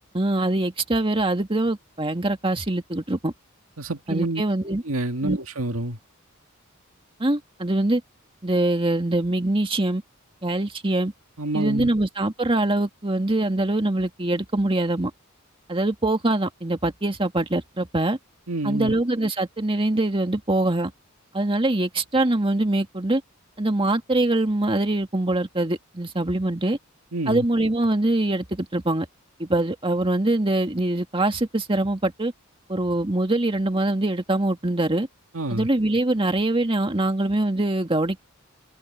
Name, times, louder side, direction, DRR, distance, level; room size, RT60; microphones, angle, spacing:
voice 1, 0.1-3.3 4.1-4.8 5.2-5.4 7.2-8.0 8.4-10.0 10.4-11.1 11.5-15.1 15.7-18.2 18.6-20.9 21.3-23.2 23.6-26.8 27.3-29.1 29.4-32.3 32.7-35.1 35.5-38.2, right 2 dB, 25° right, 2.0 m, -23 dB
voice 2, 3.8-4.4 4.8-6.0 11.4-11.9 18.5-18.9 27.1-27.4 35.3-35.7, right 2 dB, 80° right, 2.1 m, -28 dB
head